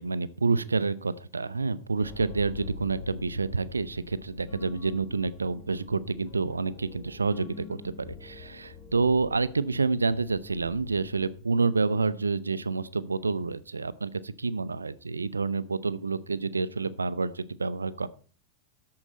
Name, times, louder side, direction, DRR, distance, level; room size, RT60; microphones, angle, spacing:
voice 1, 0.0-18.1, right 4 dB, 75° right, 18 dB, 0.7 m, -28 dB
sound 1, 2.0-11.7, left 5 dB, 40° left, 1.6 m, -45 dB
13.5 x 8.9 x 4.3 m, 0.41 s
figure-of-eight pair, 90°, 0 cm